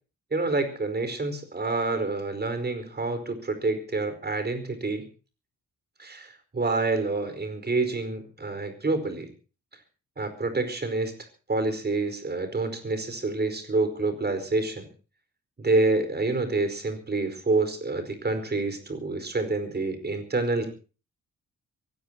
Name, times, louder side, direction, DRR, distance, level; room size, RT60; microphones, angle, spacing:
voice 1, 0.3-5.1 6.0-9.3 10.2-11.1 11.5-14.9 15.6-20.7, right 3 dB, 30° right, 10 dB, 4.8 m, -27 dB
23.5 x 18.0 x 2.9 m, 0.35 s
cardioid pair, 110°, 33 cm